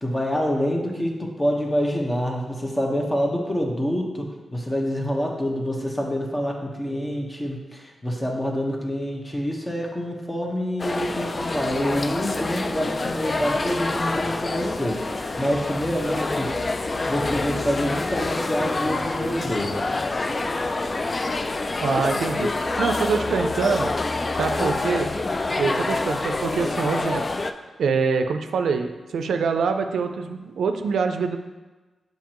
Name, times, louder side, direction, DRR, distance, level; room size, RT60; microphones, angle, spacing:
voice 1, 0.0-16.5 16.8-19.7, equal, 20° left, 1 dB, 1.1 m, -26 dB
sound 1, 10.8-27.5, left 2 dB, 35° left, 0.3 m, -27 dB
voice 2, 21.8-22.5 22.8-23.9 24.3-25.1 25.6-27.2 27.8-31.4, right 5 dB, 90° right, 6 dB, 0.4 m, -24 dB
7.1 x 5.3 x 3.0 m, 1.2 s
cardioid pair, 75°, 0 cm